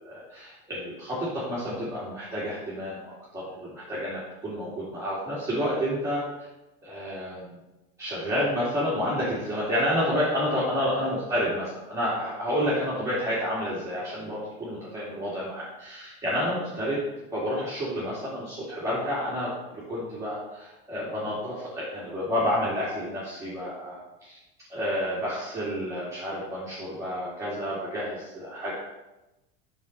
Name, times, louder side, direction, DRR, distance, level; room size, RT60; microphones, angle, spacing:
voice 1, 0.0-3.0 3.3-6.2 6.8-7.6 8.0-17.0 17.3-24.4 24.7-28.7, equal, 10° right, -9 dB, 2.7 m, -30 dB
9.3 x 6.7 x 4.1 m, 0.99 s
supercardioid pair, 150°, 31 cm